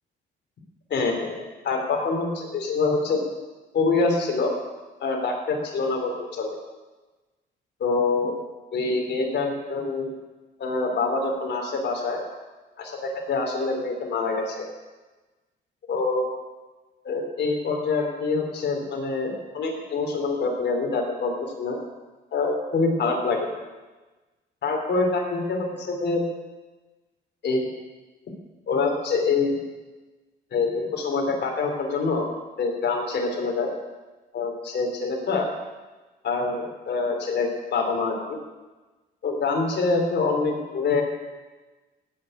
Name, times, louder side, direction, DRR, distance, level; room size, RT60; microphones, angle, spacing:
voice 1, 0.9-3.2 3.7-4.5 5.0-6.5 7.8-8.4 8.7-10.1 10.6-12.2 12.8-14.6 15.9-16.3 17.0-21.3 21.6-21.8 22.3-23.5 24.6-26.2 27.4-27.7 28.7-29.5 30.5-32.3 32.6-33.7 34.3-35.5 36.2-38.4 39.2-41.0, left 3 dB, 60° left, 1 dB, 3.7 m, -25 dB
17.0 x 6.9 x 9.1 m, 1.2 s
cardioid pair, 90°, 20 cm